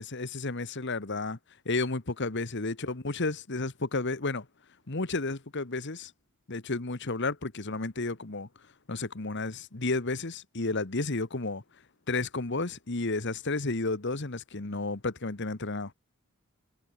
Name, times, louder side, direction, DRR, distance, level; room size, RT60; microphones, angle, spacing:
voice 1, 0.0-1.4 1.6-4.5 4.9-6.1 6.5-8.5 8.9-11.6 12.1-15.9, left 3 dB, 55° left, 1.5 m, -32 dB
head